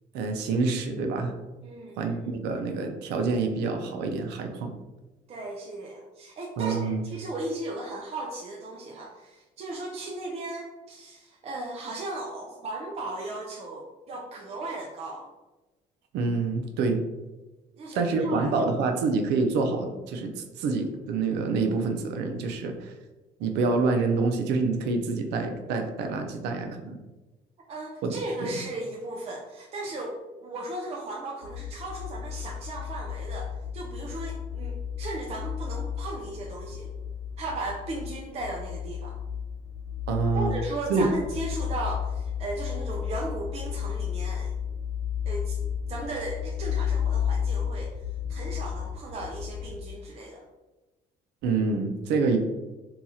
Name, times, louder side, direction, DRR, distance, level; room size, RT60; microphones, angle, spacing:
voice 1, 0.1-1.3 2.0-4.7 6.6-7.0 16.1-17.0 17.9-22.9 23.4-27.0 28.0-28.1 28.4-28.5 40.1-40.6 40.9-41.1 51.4-52.4, right 4 dB, 85° right, 5 dB, 0.5 m, -27 dB
voice 2, 1.6-2.3 5.3-15.3 17.7-18.5 27.7-36.9 37.4-39.2 40.3-44.5 45.3-45.6 45.9-47.9 48.3-50.4, right 2 dB, 40° right, -1 dB, 0.5 m, -36 dB
sound 1, 31.4-49.8, left 8 dB, 60° left, 1.2 m, -33 dB
2.9 x 2.4 x 4.1 m, 1.1 s
cardioid pair, 110°, 17 cm